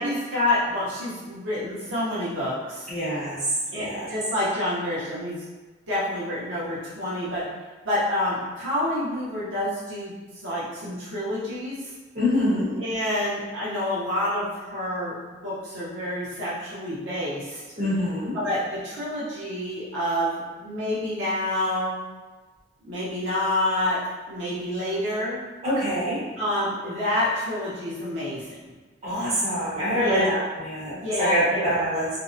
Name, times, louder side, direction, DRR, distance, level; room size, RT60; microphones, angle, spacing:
voice 1, 0.0-2.9 3.7-5.4 5.9-7.5 7.8-11.9 12.8-15.2 15.4-17.6 18.3-21.9 22.8-24.0 24.3-25.4 26.4-28.7 29.9-30.3 30.9-31.7, left 1 dB, 85° right, -8 dB, 0.7 m, -28 dB
voice 2, 2.9-3.4 3.7-4.1 12.1-12.7 17.8-18.4 25.6-26.2 29.0-32.2, equal, 35° right, -10 dB, 1.0 m, -25 dB
2.5 x 2.0 x 2.6 m, 1.3 s
head